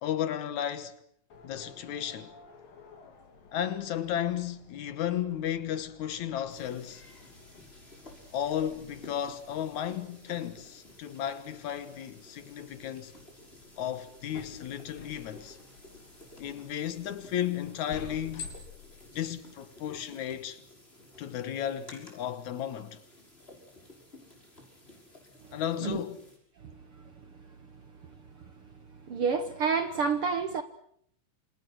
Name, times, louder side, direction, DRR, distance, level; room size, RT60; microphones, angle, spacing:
voice 1, 0.0-1.0 1.4-2.3 3.5-7.0 8.3-13.2 13.8-15.6 16.4-18.5 19.1-20.6 21.2-23.0 25.5-26.2, left 10 dB, 65° left, 2.4 m, -34 dB
sound 1, 1.3-20.2, left 5 dB, 80° left, 5.1 m, -52 dB
sound 2, 6.5-26.4, left 1 dB, 15° left, 6.4 m, -54 dB
voice 2, 29.1-30.6, right 5 dB, 60° right, 1.5 m, -28 dB
28.5 x 27.5 x 6.3 m
omnidirectional pair, 3.9 m